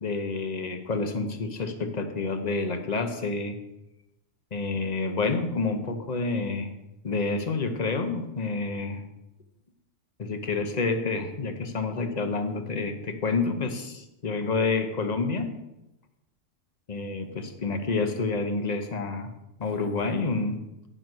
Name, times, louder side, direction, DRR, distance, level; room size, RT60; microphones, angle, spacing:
voice 1, 0.0-3.6 4.5-6.7 7.0-9.0 10.2-15.5 16.9-19.3 19.6-20.6, left 3 dB, 40° left, 7 dB, 0.9 m, -28 dB
8.9 x 5.3 x 6.1 m, 0.93 s
omnidirectional pair, 1.2 m